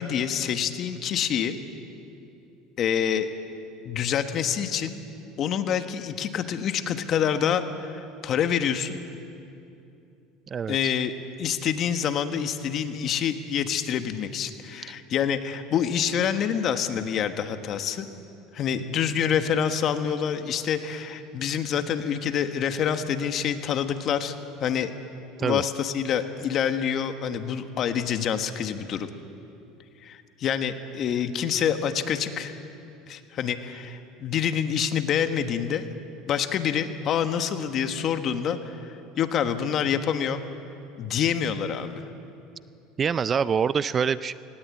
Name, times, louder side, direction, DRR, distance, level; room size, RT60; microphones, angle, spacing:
voice 1, 0.0-1.6 2.8-3.3 3.8-4.9 5.4-9.0 10.7-11.1 11.4-18.1 18.5-24.9 25.4-29.1 30.0-32.6 33.1-35.9 36.3-40.4 41.0-41.9, left 8 dB, 45° left, 8 dB, 1.3 m, -27 dB
voice 2, 10.5-10.9 25.4-25.6 43.0-44.3, right 6 dB, 30° right, 16 dB, 0.4 m, -25 dB
19.5 x 18.0 x 8.5 m, 2.7 s
supercardioid pair, 115°, 0 cm